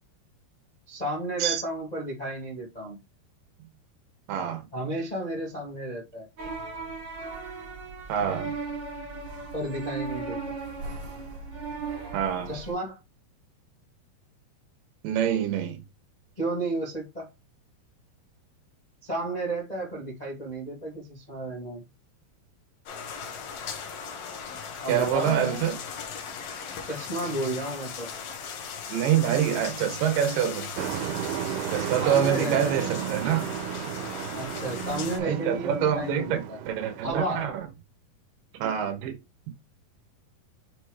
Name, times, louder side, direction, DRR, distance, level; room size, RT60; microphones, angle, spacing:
voice 1, 0.9-3.0 4.7-6.3 9.5-10.5 12.4-13.0 16.4-17.3 19.0-21.8 24.8-25.7 26.9-28.1 32.0-32.9 34.3-36.6 37.0-37.6, right 1 dB, 45° left, 0.5 m, -32 dB
voice 2, 4.3-4.6 8.1-8.5 12.1-12.5 15.0-15.8 24.9-25.7 28.9-30.9 31.7-33.5 35.2-37.5 38.6-39.2, right 9 dB, 70° right, 2.6 m, -26 dB
sound 1, 6.4-12.7, right 4 dB, 45° right, 1.6 m, -36 dB
sound 2, 22.9-35.2, left 6 dB, 75° left, 1.5 m, -38 dB
Truck, 30.8-37.5, right 11 dB, 90° right, 2.7 m, -34 dB
6.4 x 3.1 x 4.8 m
omnidirectional pair, 4.5 m